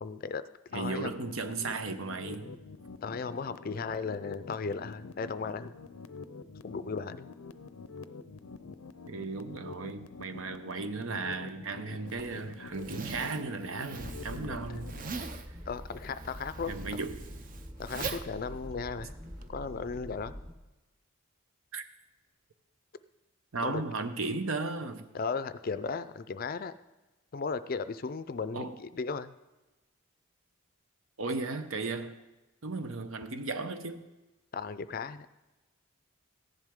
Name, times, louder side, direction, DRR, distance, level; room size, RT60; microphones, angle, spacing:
voice 1, 0.0-0.4 0.7-1.1 3.0-5.7 6.6-7.3 14.4-14.6 15.7-17.0 17.8-19.1 19.5-20.3 23.6-23.8 25.1-26.7 27.3-29.3 34.5-35.3, left 4 dB, 45° left, 13 dB, 0.4 m, -36 dB
sound 1, 0.7-15.0, left 4 dB, 90° left, 0.5 m, -46 dB
voice 2, 0.7-2.5 9.1-15.0 16.7-17.2 21.7-21.9 23.5-25.1 28.5-28.8 31.2-32.2 32.6-34.1, right 3 dB, 75° right, 9 dB, 0.9 m, -35 dB
Zipper (clothing), 12.1-19.5, right 4 dB, 40° right, 0.6 m, -42 dB
sound 2, 14.0-20.5, equal, 20° right, 1.1 m, -45 dB
15.0 x 10.5 x 3.6 m, 1.1 s
head